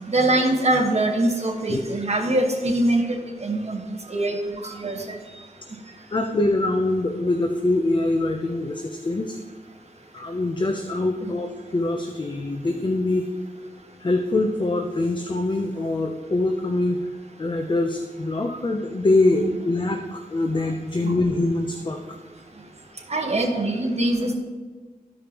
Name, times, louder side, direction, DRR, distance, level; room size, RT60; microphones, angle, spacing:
voice 1, 0.1-3.0 3.4-3.8 4.1-5.2 11.2-11.3 19.4-19.6 21.0-21.1 23.1-24.3, right 1 dB, 45° right, 1 dB, 1.5 m, -23 dB
voice 2, 6.1-9.4 10.1-13.3 14.0-17.0 17.4-22.0, left 2 dB, 30° left, 4 dB, 0.7 m, -24 dB
14.0 x 5.1 x 3.0 m, 1.4 s
wide cardioid pair, 65°, 15 cm